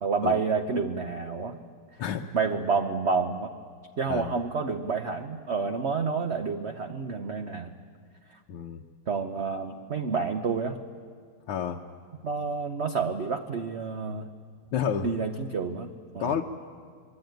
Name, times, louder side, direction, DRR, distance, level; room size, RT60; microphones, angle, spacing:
voice 1, 0.0-1.6 2.3-3.5 4.0-7.7 8.3-8.4 9.1-10.8 12.2-14.3 15.0-16.4, right 5 dB, 50° right, 5 dB, 0.8 m, -29 dB
voice 2, 8.5-8.8 11.5-11.8 14.7-15.1 16.2-16.4, left 8 dB, 80° left, 1 dB, 1.8 m, -29 dB
24.0 x 22.5 x 9.2 m, 2.1 s
omnidirectional pair, 2.4 m